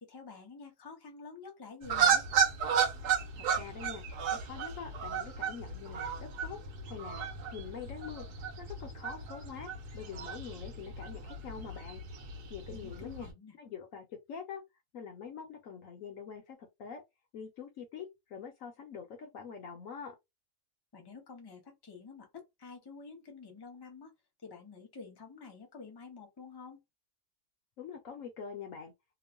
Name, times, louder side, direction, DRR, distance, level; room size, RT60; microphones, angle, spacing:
voice 1, 0.0-2.3 12.7-13.5 20.9-24.1 24.4-26.8, left 4 dB, 20° left, 0.7 m, -49 dB
sound 1, 1.8-13.3, right 7 dB, 85° right, 1.3 m, -34 dB
voice 2, 3.4-4.0 4.3-6.6 6.9-8.3 8.6-12.0 12.5-13.3 13.6-14.6 14.9-17.0 17.3-20.2 27.8-28.9, left 6 dB, 65° left, 1.0 m, -45 dB
3.0 x 2.1 x 2.5 m
omnidirectional pair, 1.6 m